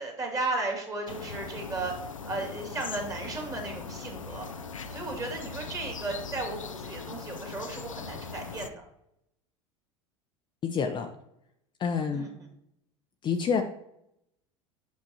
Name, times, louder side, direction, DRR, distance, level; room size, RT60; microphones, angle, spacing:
voice 1, 0.0-1.9 2.3-4.5 4.9-8.7 12.1-12.3, right 2 dB, 20° right, 1 dB, 2.3 m, -35 dB
sound 1, 1.1-8.7, left 5 dB, 90° left, 0.5 m, -40 dB
voice 2, 10.6-11.1 11.8-12.3 13.2-13.6, left 6 dB, 30° left, 5 dB, 0.6 m, -27 dB
7.6 x 5.6 x 2.8 m, 0.77 s
figure-of-eight pair, 80°, 16 cm